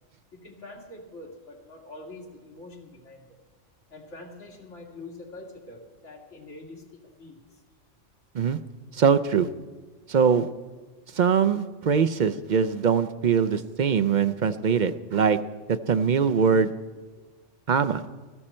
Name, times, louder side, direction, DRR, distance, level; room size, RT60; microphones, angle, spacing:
voice 1, 0.3-3.4 3.9-6.9 7.2-7.6, left 2 dB, 75° left, -2 dB, 2.6 m, -44 dB
voice 2, 8.9-9.5 10.1-10.5 11.1-15.4 15.7-16.7 17.7-18.0, right 6 dB, 55° right, 11 dB, 0.5 m, -22 dB
19.5 x 14.5 x 4.3 m, 1.3 s
omnidirectional pair, 1.3 m